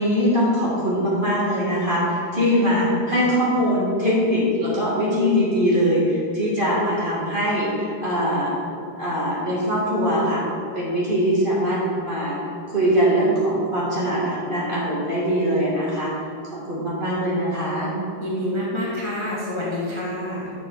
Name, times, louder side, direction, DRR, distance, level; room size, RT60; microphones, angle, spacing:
voice 1, 0.0-8.5 9.0-10.4 10.7-12.4 12.7-17.9, equal, 30° right, -7 dB, 1.7 m, -22 dB
voice 2, 18.2-20.5, left 1 dB, 15° left, -7 dB, 1.4 m, -27 dB
6.9 x 4.8 x 6.5 m, 2.5 s
omnidirectional pair, 1.9 m